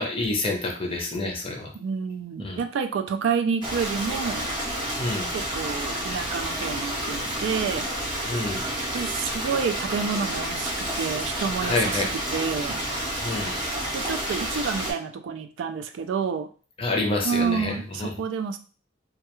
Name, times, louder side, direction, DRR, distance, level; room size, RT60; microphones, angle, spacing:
voice 1, 0.0-1.7 2.4-2.6 5.0-5.3 8.2-8.7 11.6-12.1 13.2-13.5 16.8-18.1, left 2 dB, 30° left, 1 dB, 0.5 m, -28 dB
voice 2, 1.7-4.5 5.3-7.9 8.9-12.8 13.9-16.5 17.2-18.6, right 6 dB, 75° right, 7 dB, 0.3 m, -29 dB
Stream, 3.6-14.9, right 1 dB, 25° right, 0.6 m, -30 dB
2.3 x 2.1 x 2.9 m, 0.38 s
head